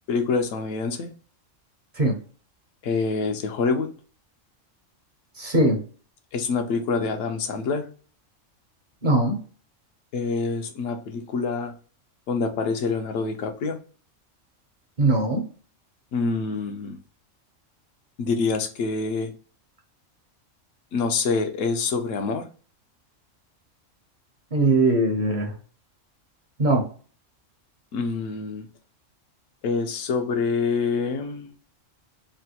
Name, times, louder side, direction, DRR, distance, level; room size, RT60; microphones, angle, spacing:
voice 1, 0.1-1.1 2.8-3.9 6.3-7.9 10.1-11.7 12.3-13.8 16.1-17.0 18.2-19.3 20.9-22.5 27.9-28.6 29.6-31.5, left 4 dB, 80° left, 1.0 m, -26 dB
voice 2, 5.3-5.8 9.0-9.4 15.0-15.4 24.5-25.5 26.6-26.9, right 2 dB, 45° right, 0.7 m, -20 dB
3.2 x 2.2 x 2.7 m
omnidirectional pair, 1.3 m